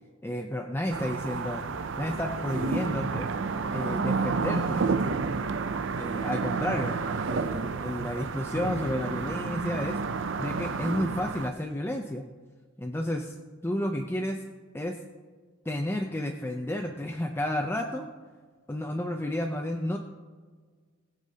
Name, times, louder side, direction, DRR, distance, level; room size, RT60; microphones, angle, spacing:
voice 1, 0.2-1.7 2.0-3.3 3.7-4.9 6.0-10.0 10.4-12.3 12.8-13.4 13.6-14.4 14.7-15.0 15.7-18.1 18.7-20.0, left 1 dB, 10° left, 3 dB, 0.5 m, -31 dB
sound 1, 0.9-11.5, right 4 dB, 65° right, 0.5 m, -30 dB
20.0 x 8.3 x 2.8 m, 1.5 s
head